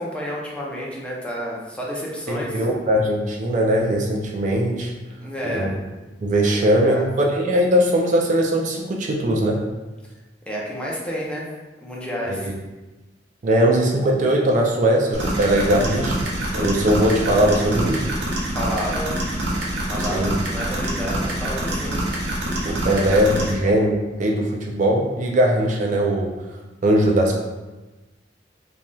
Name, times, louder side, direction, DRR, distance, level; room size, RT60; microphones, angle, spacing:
voice 1, 0.0-2.6 5.2-5.7 6.6-7.1 10.5-11.5 11.8-12.5 18.5-19.1 19.9-22.0 22.3-22.4, equal, 5° left, -5 dB, 0.5 m, -30 dB
voice 2, 2.3-4.9 5.4-5.7 6.2-9.6 12.3-12.5 13.4-16.2 16.5-18.0 20.0-20.3 22.6-26.3 26.8-27.4, right 1 dB, 45° right, -1 dB, 0.4 m, -20 dB
sound 1, 15.1-23.5, right 1 dB, 75° right, 0.7 m, -26 dB
3.0 x 2.6 x 2.3 m, 1.1 s
head